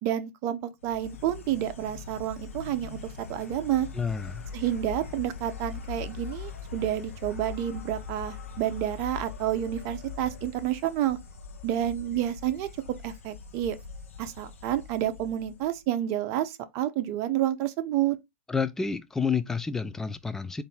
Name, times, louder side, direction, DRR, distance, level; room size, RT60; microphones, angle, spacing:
voice 1, 0.0-3.0 3.3-3.9 4.5-11.2 11.6-12.7 13.0-13.8 14.2-18.2, right 12 dB, 40° right, 0.6 m, -29 dB
Insect, 0.8-15.9, left 6 dB, 70° left, 0.7 m, -42 dB
voice 2, 3.9-4.5 18.5-20.6, left 5 dB, 5° left, 0.3 m, -29 dB
3.9 x 2.6 x 3.6 m
figure-of-eight pair, 105°, 8 cm